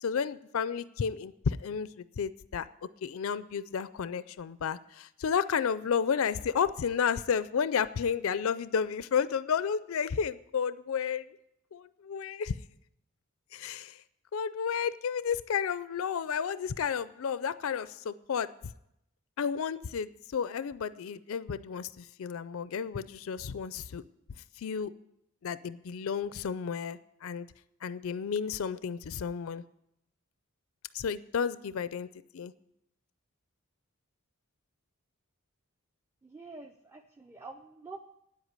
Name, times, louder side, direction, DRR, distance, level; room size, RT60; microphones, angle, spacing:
voice 1, 0.0-1.9 2.2-2.7 3.0-11.3 11.7-12.6 13.5-14.0 14.3-18.5 19.4-24.0 24.6-24.9 25.4-27.5 27.8-29.6 30.9-32.1 32.3-32.5, left 7 dB, 65° left, 15 dB, 0.4 m, -32 dB
voice 2, 36.2-38.0, right 3 dB, 10° right, 3 dB, 0.5 m, -47 dB
9.6 x 8.1 x 9.5 m, 0.81 s
head